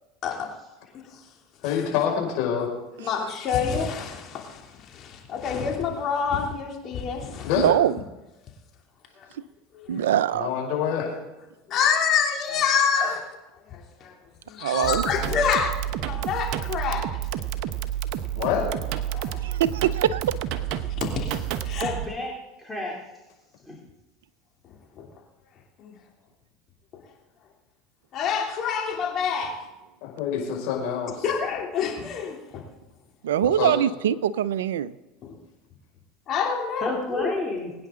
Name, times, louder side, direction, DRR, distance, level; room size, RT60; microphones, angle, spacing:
voice 1, 1.6-2.7 7.4-7.7 10.3-11.1 14.7-15.3 18.4-18.9 30.0-31.2 33.6-33.7, left 8 dB, 65° left, -1 dB, 5.7 m, -27 dB
voice 2, 3.4-3.9 5.4-6.7 7.0-7.2 11.7-13.1 14.7-15.7 16.3-16.4 16.7-17.0 21.8-21.9 28.2-29.5 31.2-31.9 36.3-36.9, left 7 dB, 45° left, 0 dB, 3.0 m, -24 dB
voice 3, 7.6-8.0 9.9-10.5 14.6-15.0 19.4-20.2 33.2-34.9, right 10 dB, 85° right, 15 dB, 0.6 m, -23 dB
sound 1, 14.8-22.1, right 11 dB, 60° right, 1.1 m, -30 dB
voice 4, 21.8-23.0 23.7-23.8 36.8-37.7, left 2 dB, 5° left, -3 dB, 3.1 m, -31 dB
22.5 x 9.7 x 3.8 m, 1.0 s
hypercardioid pair, 95°, 0 cm